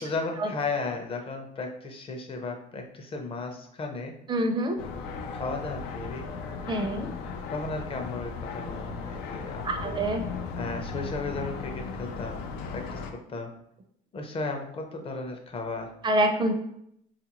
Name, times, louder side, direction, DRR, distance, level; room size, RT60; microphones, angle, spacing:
voice 1, 0.0-4.2 5.3-6.3 7.5-9.9 10.5-12.5 12.7-13.0 13.3-13.5 14.1-15.9, left 3 dB, 35° left, 3 dB, 0.6 m, -34 dB
voice 2, 4.3-4.8 6.7-7.1 9.6-10.2 16.0-16.5, right 1 dB, 25° right, 6 dB, 0.5 m, -26 dB
sound 1, 4.8-13.1, left 5 dB, 90° left, 0.4 m, -36 dB
3.5 x 2.4 x 2.9 m, 0.74 s
cardioid pair, 110°, 17 cm